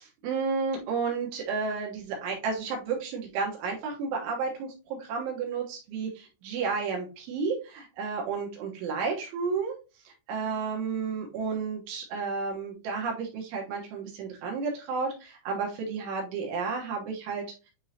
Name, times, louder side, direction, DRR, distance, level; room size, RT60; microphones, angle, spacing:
voice 1, 0.0-9.8 10.1-17.4, right 5 dB, 75° right, 0 dB, 3.6 m, -32 dB
9.5 x 3.7 x 2.8 m, 0.31 s
omnidirectional pair, 5.6 m